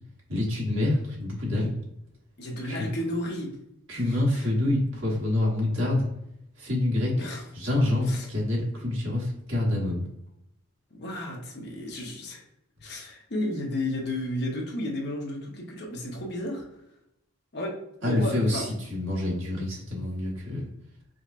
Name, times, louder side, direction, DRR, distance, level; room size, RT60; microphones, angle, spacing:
voice 1, 0.3-1.7 2.6-2.9 3.9-6.1 6.6-7.1 7.5-10.0 18.0-20.7, left 1 dB, 70° right, -4 dB, 1.4 m, -26 dB
voice 2, 2.4-3.5 3.9-4.0 4.3-4.5 7.2-7.4 8.1-8.3 10.9-12.4 12.8-16.6 17.5-18.7, left 1 dB, 50° left, -1 dB, 0.9 m, -33 dB
5.0 x 2.1 x 2.5 m, 0.81 s
head